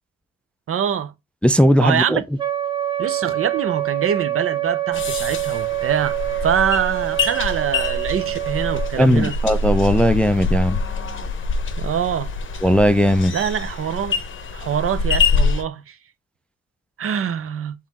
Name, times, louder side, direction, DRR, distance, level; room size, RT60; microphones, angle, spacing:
voice 1, 0.7-1.1 1.8-2.2 3.0-6.2 6.4-9.3 11.8-12.3 13.3-14.1 14.5-16.0 17.0-17.7, right 8 dB, 45° right, 0.6 m, -24 dB
voice 2, 1.4-2.2 9.0-10.8 12.6-13.3, equal, 5° left, 0.3 m, -17 dB
Wind instrument woodwind instrument, 2.4-8.9, right 14 dB, 15° right, 1.0 m, -25 dB
sound 1, 4.9-15.6, left 4 dB, 40° left, 0.8 m, -25 dB
3.9 x 3.1 x 4.0 m
cardioid pair, 90°, 30 cm